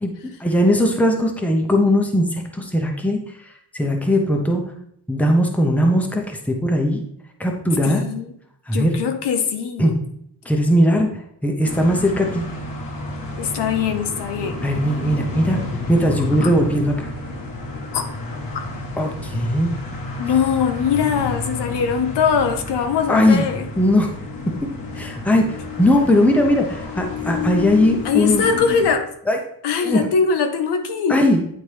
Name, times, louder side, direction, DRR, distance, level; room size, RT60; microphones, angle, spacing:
voice 1, 0.0-3.2 3.7-4.6 5.1-7.0 7.4-8.0 8.7-8.9 9.8-9.9 10.4-11.1 11.4-12.4 14.6-15.6 15.9-17.1 19.0-19.7 23.1-23.5 23.8-24.1 25.0-28.4 29.3-29.4 29.8-30.1 31.1-31.4, left 1 dB, 5° left, 2 dB, 0.7 m, -19 dB
voice 2, 7.8-8.3 8.7-10.0 13.4-14.6 16.4-16.5 17.9-18.0 20.2-23.7 28.0-29.1 29.6-31.3, left 6 dB, 85° left, 6 dB, 1.0 m, -21 dB
sound 1, 11.6-28.9, left 3 dB, 55° left, 1.2 m, -30 dB
9.2 x 4.2 x 3.3 m, 0.70 s
wide cardioid pair, 165°, 40 cm